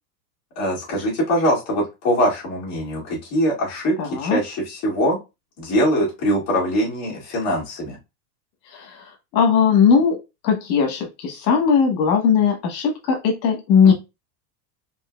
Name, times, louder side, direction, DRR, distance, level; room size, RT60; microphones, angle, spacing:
voice 1, 0.6-5.2 5.6-8.0, equal, 30° left, -4 dB, 2.0 m, -22 dB
voice 2, 4.0-4.4 8.7-10.2 10.4-13.9, left 6 dB, 80° left, 2 dB, 1.2 m, -18 dB
4.3 x 2.6 x 2.3 m, 0.24 s
supercardioid pair, 160°, 50 cm